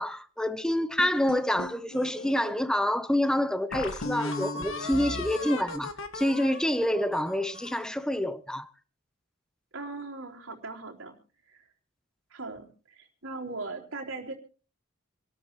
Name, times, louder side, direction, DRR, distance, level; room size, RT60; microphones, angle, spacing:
voice 1, 0.0-8.7, left 1 dB, 5° left, 0.8 m, -27 dB
sound 1, 1.0-2.5 3.1-3.2 3.7-7.9, left 2 dB, 70° left, 1.8 m, -36 dB
voice 2, 9.7-11.2 11.5-11.6 12.3-14.3, right 3 dB, 70° right, 3.8 m, -39 dB
27.0 x 13.0 x 3.1 m
head